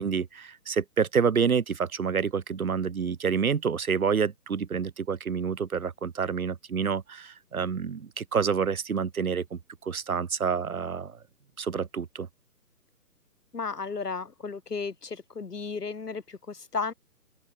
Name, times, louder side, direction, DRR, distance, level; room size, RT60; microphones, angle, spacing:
voice 1, 0.0-11.2 11.6-12.3, right 6 dB, 60° right, 1.4 m, -28 dB
voice 2, 13.5-16.9, left 4 dB, 70° left, 6.3 m, -34 dB
open air
hypercardioid pair, 180°, 48 cm